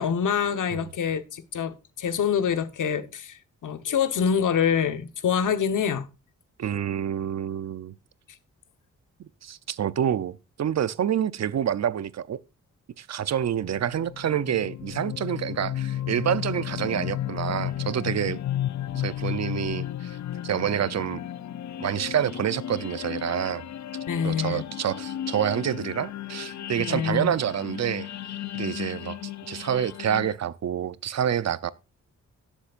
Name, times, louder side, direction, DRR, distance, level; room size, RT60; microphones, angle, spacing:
voice 1, 0.0-6.1 24.1-24.6 26.8-27.3, left 7 dB, 85° left, 1.2 m, -26 dB
voice 2, 6.6-7.9 9.2-12.4 13.0-18.4 18.9-20.2 20.4-21.2 21.8-23.6 24.2-28.1 28.5-31.7, right 9 dB, 60° right, 0.6 m, -28 dB
sound 1, 13.6-30.3, left 12 dB, 65° left, 0.5 m, -34 dB
18.0 x 7.4 x 2.5 m
wide cardioid pair, 125°, 30 cm